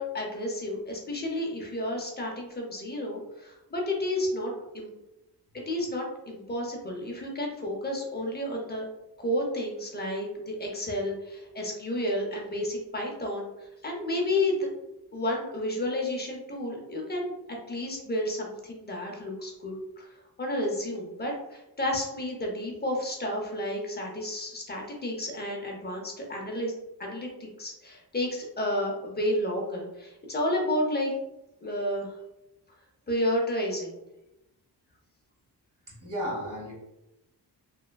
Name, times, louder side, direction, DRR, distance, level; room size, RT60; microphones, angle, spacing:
voice 1, 0.0-4.9 5.5-8.9 9.2-13.5 13.8-14.7 15.1-17.3 17.7-20.1 20.4-26.7 27.0-31.1 31.6-32.1 33.1-34.0, left 1 dB, 25° left, 0 dB, 0.6 m, -31 dB
voice 2, 35.9-36.7, equal, 50° right, -5 dB, 1.4 m, -34 dB
3.2 x 2.2 x 2.2 m, 0.92 s
wide cardioid pair, 105°, 40 cm